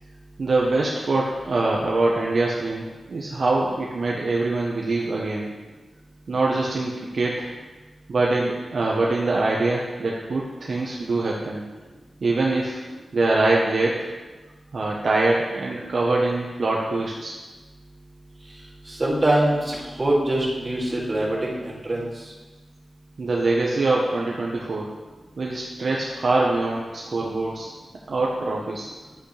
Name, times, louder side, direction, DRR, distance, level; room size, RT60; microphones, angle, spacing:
voice 1, 0.4-5.5 6.3-7.5 8.1-11.6 12.2-12.8 13.1-14.1 14.7-17.3 23.2-24.9 25.4-27.7 28.1-28.9, right 2 dB, 60° right, -3 dB, 1.1 m, -24 dB
voice 2, 18.8-22.3, right 1 dB, 30° right, -6 dB, 2.7 m, -24 dB
11.5 x 8.1 x 3.4 m, 1.2 s
wide cardioid pair, 110°, 0 cm